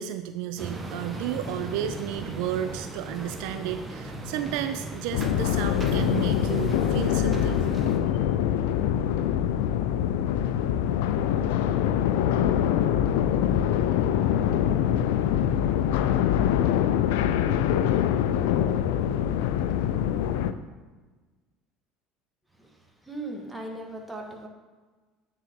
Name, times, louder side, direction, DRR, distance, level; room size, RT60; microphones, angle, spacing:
voice 1, 0.0-7.7, right 10 dB, 70° right, 9 dB, 0.3 m, -33 dB
sound 1, 0.6-8.0, right 2 dB, 25° right, 1.2 m, -36 dB
sound 2, 5.1-20.5, left 10 dB, 75° left, 0.3 m, -24 dB
voice 2, 22.5-24.5, right 2 dB, 10° right, 1 dB, 1.6 m, -38 dB
9.2 x 3.8 x 4.7 m, 1.3 s
hypercardioid pair, 75°, 0 cm